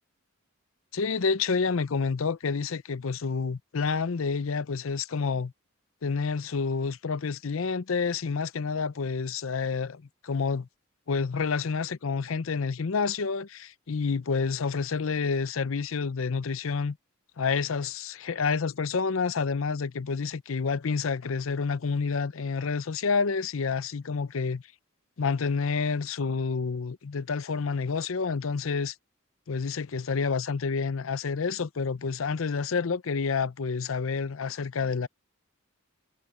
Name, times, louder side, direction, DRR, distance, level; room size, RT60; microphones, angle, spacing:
voice 1, 0.9-5.5 6.0-10.7 11.1-17.0 17.4-24.6 25.2-28.9 29.5-35.1, left 5 dB, 75° left, 0.6 m, -29 dB
head